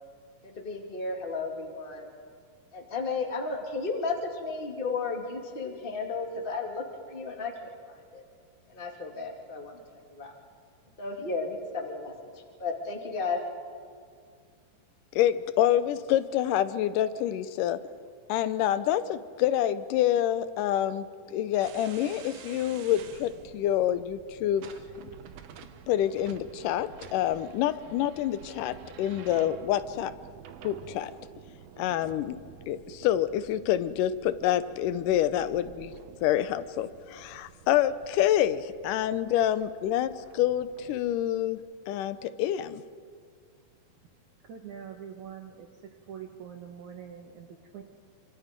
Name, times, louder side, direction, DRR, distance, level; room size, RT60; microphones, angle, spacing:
voice 1, 0.4-2.1 2.7-8.2 8.7-9.8 10.1-10.3 11.0-13.4, left 4 dB, 15° left, 2 dB, 2.1 m, -34 dB
voice 2, 15.2-17.8 18.3-24.7 25.0-25.1 25.9-30.1 30.6-31.1 31.8-32.4 32.7-36.0 36.2-41.6 41.9-42.8, left 11 dB, 75° left, 14 dB, 2.2 m, -27 dB
sound 1, 21.6-41.3, right 8 dB, 85° right, 3.0 m, -49 dB
voice 3, 44.5-45.7 46.1-47.8, right 8 dB, 60° right, 1 dB, 2.4 m, -43 dB
27.5 x 26.5 x 5.2 m, 2.1 s
omnidirectional pair, 4.2 m